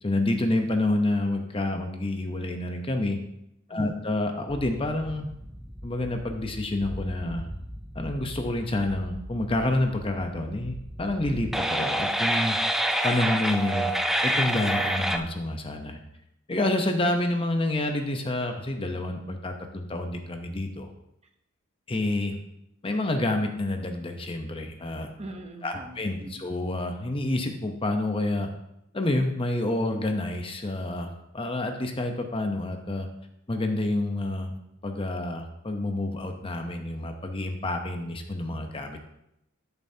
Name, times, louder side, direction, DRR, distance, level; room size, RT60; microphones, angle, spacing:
voice 1, 0.0-3.2 3.7-5.3 5.8-7.5 7.9-12.6 13.0-13.9 14.2-16.0 16.5-20.9 21.9-22.4 22.8-25.1 25.6-28.5 28.9-33.1 33.5-34.5 34.8-39.0, left 1 dB, 25° left, 5 dB, 0.8 m, -28 dB
voice 2, 3.7-4.0 25.2-26.5, right 2 dB, 30° right, 5 dB, 0.9 m, -42 dB
sound 1, 4.5-15.2, right 1 dB, ahead, 0.4 m, -30 dB
13.0 x 6.9 x 2.8 m, 0.83 s
head